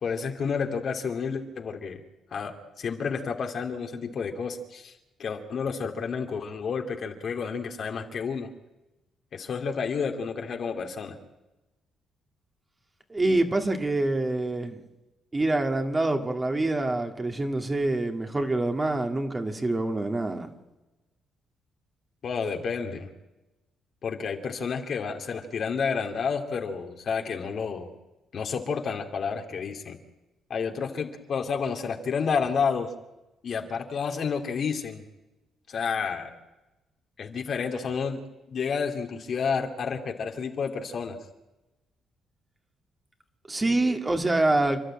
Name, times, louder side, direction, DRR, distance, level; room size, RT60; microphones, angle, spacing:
voice 1, 0.0-2.0 2.3-8.5 9.3-11.2 22.2-23.1 24.0-27.9 28.3-30.0 30.5-32.9 33.4-35.0 35.7-36.4 37.2-38.2 38.5-41.2, left 6 dB, 55° left, 4 dB, 2.4 m, -30 dB
voice 2, 13.1-14.8 15.3-20.5 43.5-44.8, right 2 dB, 20° right, 5 dB, 2.2 m, -26 dB
28.5 x 11.5 x 8.8 m, 1.1 s
cardioid pair, 90°, 0 cm